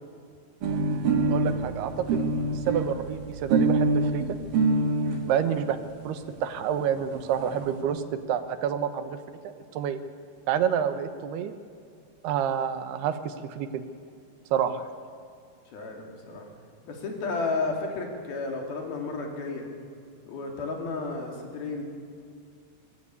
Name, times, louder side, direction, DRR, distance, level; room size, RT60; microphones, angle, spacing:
sound 1, 0.6-5.2 6.0-6.1 6.4-6.5 6.7-6.8 7.0-7.7, right 3 dB, 65° right, 3.8 m, -25 dB
voice 1, 1.3-2.2 2.7-4.2 5.3-5.8 6.0-9.2 9.4-10.0 10.5-11.5 12.2-13.8 14.5-14.8, right 8 dB, 85° right, 10 dB, 3.2 m, -28 dB
voice 2, 15.7-16.5 16.8-19.7 20.2-21.8, left 3 dB, 70° left, 2 dB, 4.8 m, -32 dB
25.5 x 23.0 x 8.4 m, 2.3 s
omnidirectional pair, 4.5 m